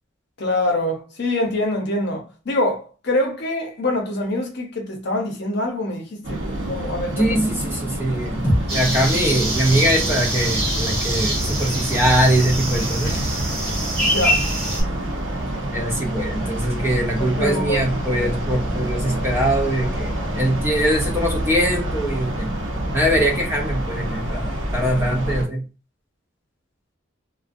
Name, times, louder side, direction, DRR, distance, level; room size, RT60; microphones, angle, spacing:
voice 1, 0.4-7.5 14.0-14.4 17.2-17.8 18.2-18.3, left 1 dB, 55° left, 0.7 m, -25 dB
sound 1, 6.2-25.4, right 1 dB, 80° right, 0.7 m, -27 dB
voice 2, 7.2-13.2 15.7-22.5 22.9-25.7, right 1 dB, 10° right, 0.4 m, -22 dB
sound 2, 8.4-12.8, equal, 10° left, 0.8 m, -29 dB
sound 3, 8.7-14.8, right 1 dB, 30° right, 0.9 m, -25 dB
2.4 x 2.1 x 2.5 m
head